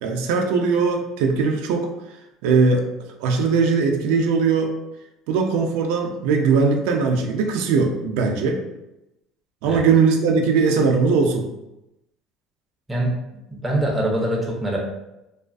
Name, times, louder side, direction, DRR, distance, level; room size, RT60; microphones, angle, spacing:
voice 1, 0.0-1.9 2.4-2.8 3.2-4.7 5.3-8.6 9.6-11.5, right 4 dB, 80° right, 3 dB, 0.3 m, -20 dB
voice 2, 13.5-14.8, right 1 dB, 10° right, -2 dB, 0.4 m, -23 dB
2.4 x 2.3 x 2.3 m, 0.92 s
cardioid pair, 170°, 0 cm